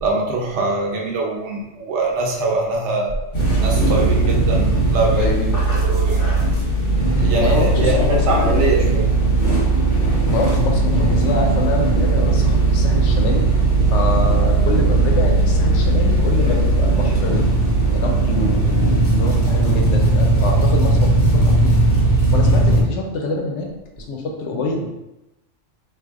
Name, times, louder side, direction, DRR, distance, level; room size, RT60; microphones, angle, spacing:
voice 1, 0.0-3.1 3.6-5.3 5.8-6.3 7.2-9.1 19.6-19.8, right 3 dB, 75° right, -1 dB, 1.0 m, -23 dB
sound 1, 3.3-22.8, right 2 dB, 45° left, 1.0 m, -17 dB
voice 2, 5.2-5.6 6.4-6.5 7.4-8.4 8.6-9.0 10.3-13.5 13.9-17.5 17.9-21.9 22.3-23.7 24.0-24.9, left 3 dB, 75° left, 1 dB, 0.9 m, -26 dB
4.0 x 2.5 x 2.4 m, 0.95 s
omnidirectional pair, 1.2 m